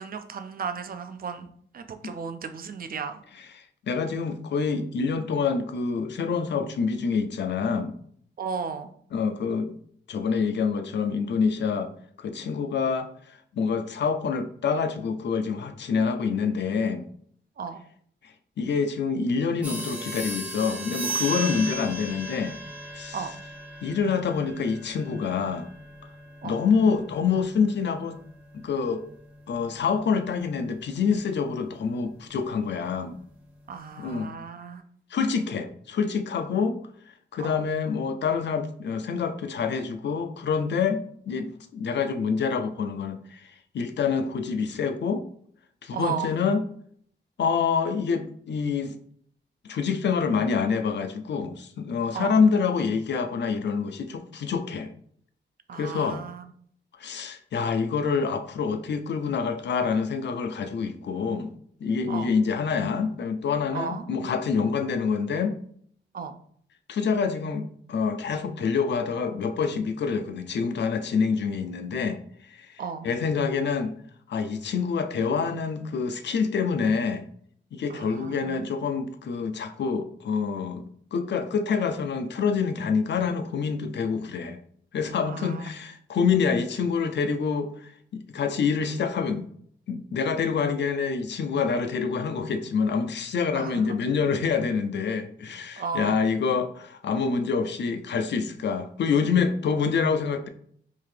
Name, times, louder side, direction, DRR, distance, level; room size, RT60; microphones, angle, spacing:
voice 1, 0.0-1.5 1.7-3.2 8.4-8.9 17.6-17.8 21.5-21.7 23.1-23.3 26.4-26.6 33.7-34.8 37.4-37.7 45.9-46.4 52.1-52.3 55.7-56.5 62.1-62.4 63.7-64.0 66.1-66.3 72.8-73.1 77.9-78.7 85.3-85.6 93.5-93.9 95.8-96.3, right 6 dB, 50° right, 9 dB, 0.4 m, -34 dB
voice 2, 3.9-7.9 9.1-9.8 10.1-11.9 12.2-17.1 18.2-22.6 22.9-23.2 23.8-25.7 26.4-28.2 28.5-29.0 29.5-33.2 34.0-34.3 35.1-36.8 37.3-45.2 45.8-46.6 47.4-48.9 49.7-54.9 55.7-56.2 57.0-61.5 61.8-65.6 66.9-73.9 74.3-77.2 77.7-80.8 81.1-84.6 84.9-89.5 89.9-100.5, left 5 dB, 65° left, 9 dB, 0.4 m, -26 dB
sound 1, 19.6-29.8, right 2 dB, 5° right, 0.6 m, -37 dB
3.6 x 2.7 x 3.2 m, 0.62 s
wide cardioid pair, 170°, 20 cm